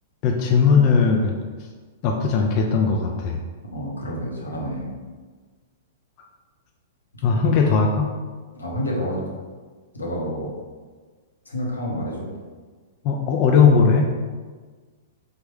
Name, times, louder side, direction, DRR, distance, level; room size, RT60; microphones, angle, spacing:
voice 1, 0.2-1.3 2.0-3.4 7.2-8.1 13.0-14.1, left 5 dB, 40° left, 1 dB, 0.3 m, -18 dB
voice 2, 3.7-4.9 7.3-7.5 8.6-9.3 9.9-10.5 11.5-12.3, equal, 85° left, -3 dB, 0.8 m, -29 dB
3.4 x 2.1 x 3.3 m, 1.4 s
figure-of-eight pair, 105°, 0 cm